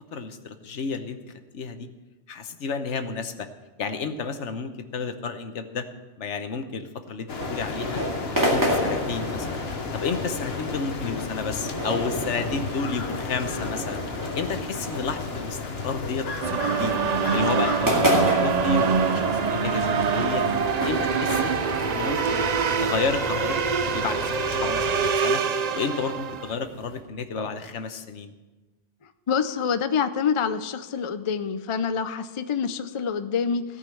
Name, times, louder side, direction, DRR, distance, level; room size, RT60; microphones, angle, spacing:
voice 1, 0.1-1.2 1.5-1.9 2.3-3.5 3.8-5.8 6.2-8.0 8.4-9.6 9.9-14.0 14.3-15.6 15.8-17.0 17.3-20.5 20.8-21.5 21.9-22.5 22.8-25.4 25.7-28.3, left 5 dB, 75° left, 8 dB, 1.2 m, -31 dB
sound 1, 7.3-25.1, left 4 dB, 60° left, 1.3 m, -34 dB
sound 2, 7.4-27.0, equal, 15° right, 2.1 m, -31 dB
sound 3, 16.4-26.5, right 6 dB, 50° right, 0.5 m, -25 dB
voice 2, 29.3-33.6, left 6 dB, 40° left, 10 dB, 0.5 m, -26 dB
16.5 x 5.6 x 7.7 m, 1.2 s
omnidirectional pair, 1.2 m